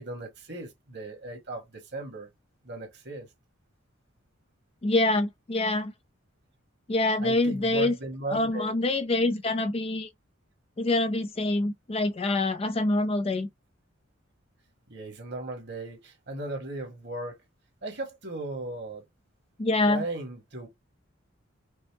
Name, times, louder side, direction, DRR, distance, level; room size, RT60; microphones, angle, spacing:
voice 1, 0.0-2.3 2.6-3.3 7.2-8.7 14.9-17.4 17.8-19.0 19.8-20.7, right 2 dB, 55° right, 1.6 m, -37 dB
voice 2, 4.8-5.9 6.9-8.0 8.3-10.1 10.8-13.5 19.6-20.0, left 2 dB, 30° left, 0.4 m, -25 dB
5.3 x 2.1 x 3.4 m
head